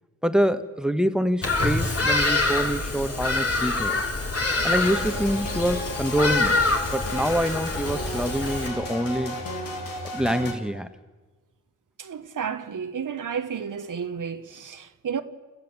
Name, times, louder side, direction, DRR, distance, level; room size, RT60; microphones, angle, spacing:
voice 1, 0.2-4.0 4.6-6.6 6.9-9.4 10.1-10.9, equal, ahead, 1.3 m, -25 dB
Bird vocalization bird call bird song, 1.4-8.7, left 3 dB, 45° left, 3.2 m, -26 dB
sound 1, 4.8-10.5, left 1 dB, 85° left, 3.1 m, -34 dB
voice 2, 12.0-15.2, right 7 dB, 65° right, 1.2 m, -32 dB
29.5 x 15.0 x 7.3 m
cardioid pair, 65°, 33 cm